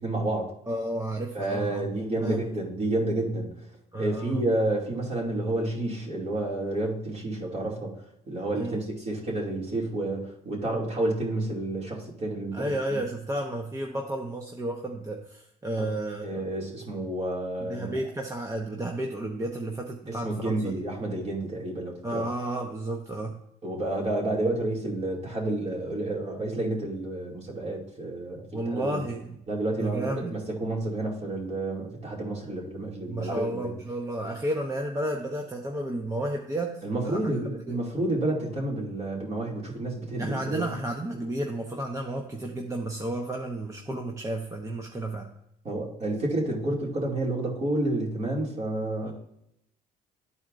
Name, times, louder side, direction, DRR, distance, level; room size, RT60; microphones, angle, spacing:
voice 1, 0.0-0.5 1.3-3.5 4.0-13.0 15.8-15.9 16.2-18.0 20.1-22.2 23.6-29.0 29.5-33.7 36.8-40.7 45.6-49.1, right 2 dB, 40° right, -2 dB, 2.4 m, -30 dB
voice 2, 0.7-1.9 2.2-2.5 3.9-4.5 8.5-8.8 12.5-16.5 17.7-20.7 22.0-23.4 28.5-29.4 29.7-30.4 33.1-37.8 40.2-45.3 49.0-49.1, right 1 dB, 20° right, 1 dB, 0.8 m, -32 dB
12.0 x 4.3 x 2.5 m, 0.77 s
cardioid pair, 110°, 17 cm